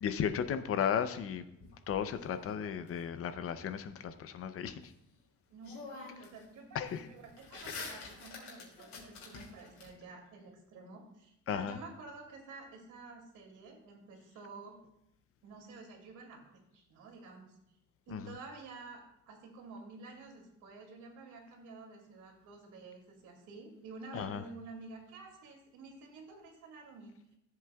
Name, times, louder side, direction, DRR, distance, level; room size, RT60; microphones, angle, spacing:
voice 1, 0.0-1.4 1.9-4.8 6.7-7.0 7.8-8.0 11.5-11.8 18.1-18.2 24.1-24.4, left 8 dB, 50° left, 11 dB, 0.6 m, -34 dB
sound 1, 1.6-2.9 5.1-5.2 5.6-6.4 6.7-9.9, left 4 dB, 65° left, 2.9 m, -47 dB
voice 2, 5.5-14.7 15.4-17.6 18.1-27.2, right 3 dB, 85° right, 1 dB, 2.5 m, -50 dB
14.0 x 7.8 x 2.3 m, 0.82 s
cardioid pair, 155°, 30 cm